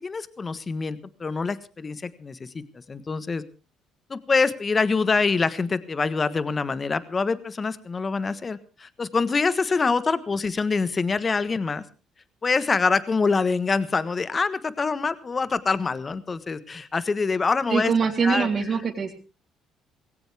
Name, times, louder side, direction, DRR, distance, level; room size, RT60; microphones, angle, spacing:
voice 1, 0.0-3.4 4.1-11.8 12.4-17.9 18.2-18.5, left 4 dB, 35° left, 14 dB, 1.3 m, -25 dB
voice 2, 17.7-19.1, right 5 dB, 45° right, 1 dB, 3.4 m, -23 dB
20.0 x 16.5 x 3.5 m, 0.35 s
supercardioid pair, 60°, 0 cm